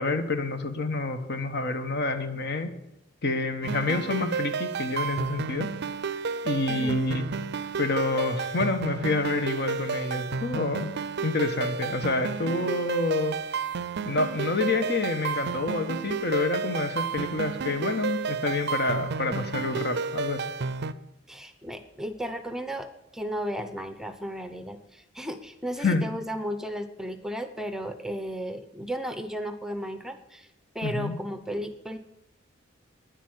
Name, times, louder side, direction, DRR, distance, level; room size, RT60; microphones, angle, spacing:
voice 1, 0.0-2.7 3.2-5.7 6.4-7.2 7.8-10.9 11.2-13.4 14.0-20.5 25.8-26.1 30.8-31.1, left 3 dB, 55° left, 8 dB, 1.3 m, -28 dB
sound 1, 3.6-20.9, right 5 dB, 55° right, 0.5 m, -31 dB
voice 2, 6.7-7.0 21.3-30.5 30.7-32.0, equal, 5° right, 10 dB, 0.7 m, -34 dB
10.5 x 8.2 x 9.6 m, 0.87 s
head